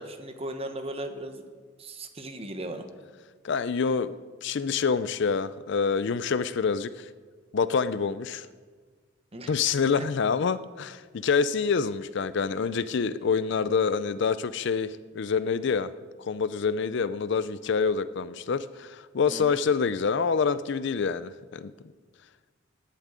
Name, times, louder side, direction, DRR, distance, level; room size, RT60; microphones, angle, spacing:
voice 1, 0.0-1.4 1.8-2.8 9.3-9.6 10.0-10.1 19.3-19.6, right 1 dB, 30° right, 7 dB, 1.0 m, -37 dB
voice 2, 3.4-4.1 4.4-7.1 7.5-8.5 9.5-15.9 16.2-21.7, left 5 dB, 55° left, 15 dB, 0.4 m, -26 dB
11.0 x 8.5 x 9.0 m, 1.5 s
head